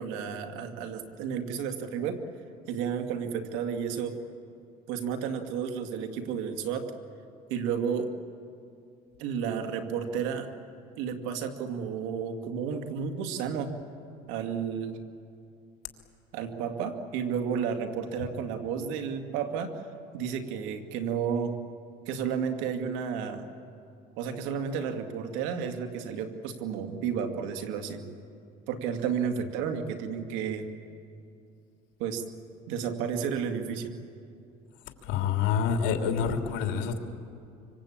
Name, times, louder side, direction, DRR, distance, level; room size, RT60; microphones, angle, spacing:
voice 1, 0.0-2.2 2.7-4.2 4.9-6.9 7.5-8.1 9.2-10.5 11.0-13.7 14.3-15.0 16.3-19.9 20.1-21.6 22.1-23.5 24.2-28.0 28.7-30.7 32.0-32.2 32.7-33.9, right 7 dB, 85° right, 6 dB, 2.4 m, -32 dB
voice 2, 35.1-37.0, left 7 dB, 75° left, 4 dB, 3.0 m, -27 dB
25.5 x 25.0 x 8.8 m, 2.5 s
cardioid pair, 130°, 19 cm